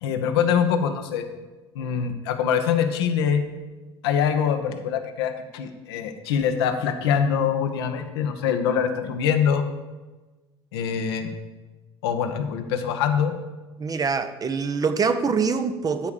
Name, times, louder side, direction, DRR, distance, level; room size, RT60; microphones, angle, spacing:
voice 1, 0.0-1.2 1.7-3.4 4.0-9.6 10.7-11.3 12.0-13.3, left 7 dB, 65° left, 6 dB, 1.1 m, -24 dB
voice 2, 13.8-16.1, right 5 dB, 25° right, 9 dB, 0.9 m, -24 dB
13.0 x 4.7 x 7.3 m, 1.2 s
figure-of-eight pair, 70°, 14 cm